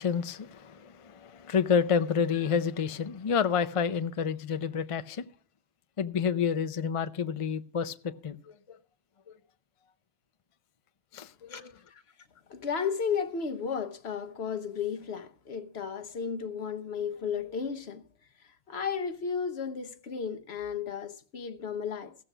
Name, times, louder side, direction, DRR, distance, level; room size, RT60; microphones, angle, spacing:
voice 1, 0.0-5.2 6.0-8.4 8.7-8.8 11.1-11.7, left 6 dB, 40° left, 0.5 m, -29 dB
voice 2, 12.5-18.0 18.7-22.1, left 6 dB, 60° left, 1.1 m, -34 dB
16.0 x 6.7 x 6.0 m
omnidirectional pair, 1.2 m